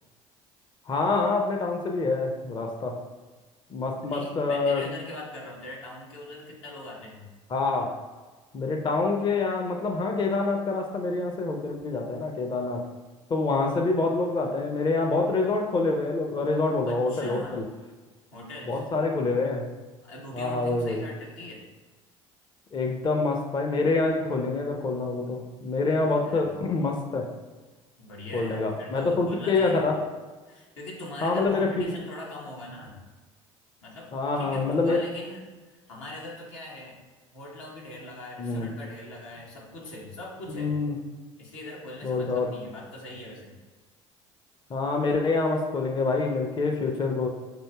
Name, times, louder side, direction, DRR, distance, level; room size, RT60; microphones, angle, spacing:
voice 1, 0.9-3.0 3.7-4.9 7.5-7.9 8.5-12.8 13.3-17.7 18.7-19.7 20.3-21.0 22.7-27.3 28.3-30.0 31.2-31.9 34.1-35.0 38.4-38.7 40.5-41.0 42.0-42.5 44.7-47.3, left 3 dB, 30° left, 2 dB, 0.5 m, -26 dB
voice 2, 4.1-7.3 16.9-17.7 18.3-18.8 20.0-21.7 26.2-26.5 28.0-29.9 30.5-33.0 33.8-37.0 37.3-40.7 41.4-43.5, left 1 dB, 75° left, -3 dB, 1.0 m, -41 dB
6.0 x 2.6 x 2.3 m, 1.3 s
figure-of-eight pair, 60°, 16 cm